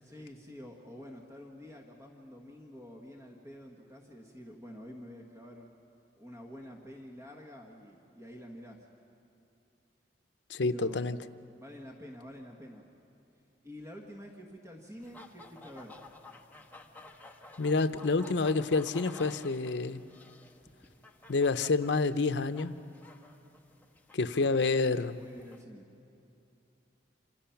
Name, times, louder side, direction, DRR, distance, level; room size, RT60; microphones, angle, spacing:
voice 1, 0.0-5.7 6.2-8.9 10.6-11.2 11.6-12.8 13.6-16.0 24.4-25.9, equal, 15° right, 0 dB, 1.5 m, -48 dB
voice 2, 10.5-11.2 17.6-20.0 21.3-22.8 24.1-25.1, left 3 dB, 80° left, 11 dB, 0.7 m, -28 dB
sound 1, 15.0-25.6, left 2 dB, 10° left, 1.1 m, -53 dB
27.5 x 27.0 x 5.8 m, 2.7 s
head